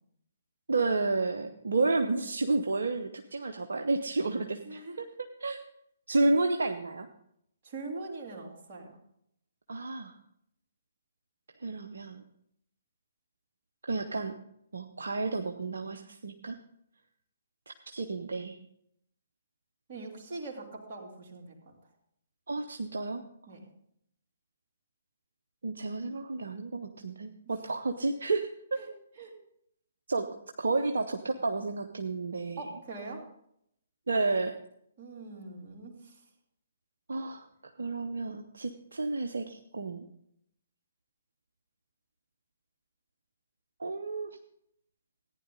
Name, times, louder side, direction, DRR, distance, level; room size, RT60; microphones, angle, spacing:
voice 1, 0.7-5.1 5.4-5.6 6.1-7.1 9.7-10.2 11.6-12.2 13.9-14.3 14.7-16.6 17.9-18.6 22.5-23.2 25.6-28.8 30.1-30.3 30.6-32.6 34.1-34.5 37.1-37.5 37.8-40.1 43.8-44.3, right 3 dB, 70° right, 5 dB, 0.8 m, -31 dB
voice 2, 4.7-5.0 7.6-8.9 19.9-21.7 23.5-23.6 28.8-28.9 29.2-29.3 32.6-33.2 35.0-36.1, right 3 dB, 40° right, -1 dB, 2.9 m, -42 dB
15.0 x 9.9 x 3.8 m, 0.72 s
figure-of-eight pair, 130°, 0 cm